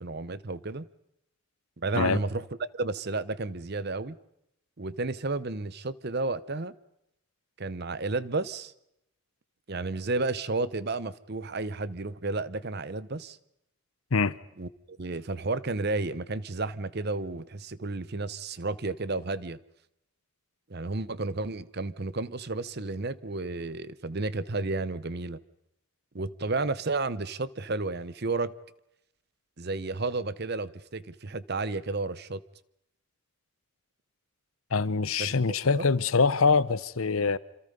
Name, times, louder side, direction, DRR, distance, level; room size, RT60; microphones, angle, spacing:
voice 1, 0.0-0.9 1.8-2.4 2.8-4.2 4.8-6.7 7.6-8.7 9.7-13.4 14.6-19.6 20.7-25.4 26.1-28.5 29.6-32.4 35.2-35.3 35.7-35.9, right 3 dB, 45° right, 0.8 m, -32 dB
voice 2, 34.7-37.4, left 4 dB, 75° left, 0.8 m, -24 dB
27.5 x 26.5 x 5.4 m
head